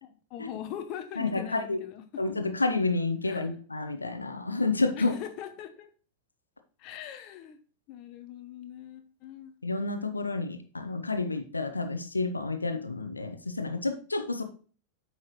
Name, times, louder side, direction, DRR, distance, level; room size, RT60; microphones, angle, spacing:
voice 1, 0.0-2.0 3.3-3.5 4.9-5.9 6.8-7.6 7.9-9.5, left 10 dB, 40° left, 8 dB, 0.9 m, -41 dB
voice 2, 1.2-1.8 2.2-5.1 9.6-14.4, left 3 dB, 80° left, 7 dB, 0.8 m, -30 dB
8.6 x 5.7 x 3.1 m, 0.39 s
figure-of-eight pair, 90°, 0 cm